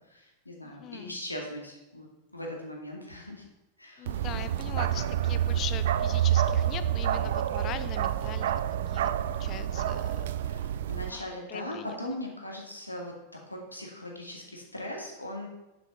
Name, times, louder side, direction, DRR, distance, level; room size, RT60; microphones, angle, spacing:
voice 1, 0.0-3.4 3.8-4.3 10.4-13.1 13.5-15.5, left 1 dB, 85° left, 0 dB, 2.2 m, -40 dB
voice 2, 0.6-1.2 4.0-8.5 8.9-10.3 11.1-12.2, left 10 dB, 35° left, 13 dB, 0.7 m, -41 dB
Bark, 4.1-11.1, right 11 dB, 55° right, 0.4 m, -28 dB
9.3 x 7.5 x 5.4 m, 0.99 s
figure-of-eight pair, 90°, 0 cm